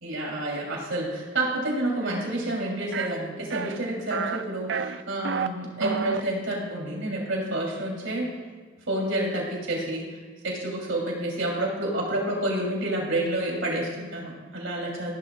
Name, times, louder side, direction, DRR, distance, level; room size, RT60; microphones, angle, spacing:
voice 1, 0.0-8.3 8.9-10.1 10.4-15.1, right 1 dB, 75° right, -2 dB, 3.4 m, -29 dB
sound 1, 2.9-3.1 3.5-3.8 4.1-4.4 4.7-5.5 5.8-6.2, right 5 dB, 60° right, 0.4 m, -29 dB
16.5 x 11.5 x 2.4 m, 1.5 s
head